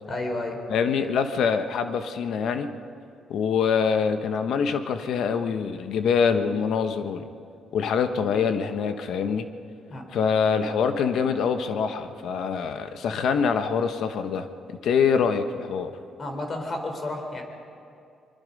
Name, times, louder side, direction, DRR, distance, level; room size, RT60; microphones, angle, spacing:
voice 1, 0.1-0.6 9.9-10.0 16.2-17.4, left 2 dB, 40° left, 4 dB, 3.9 m, -31 dB
voice 2, 0.7-2.7 3.3-7.3 7.7-9.5 10.1-15.9, left 6 dB, 75° left, 8 dB, 1.3 m, -25 dB
25.0 x 21.5 x 5.4 m, 2.5 s
cardioid pair, 90°, 0 cm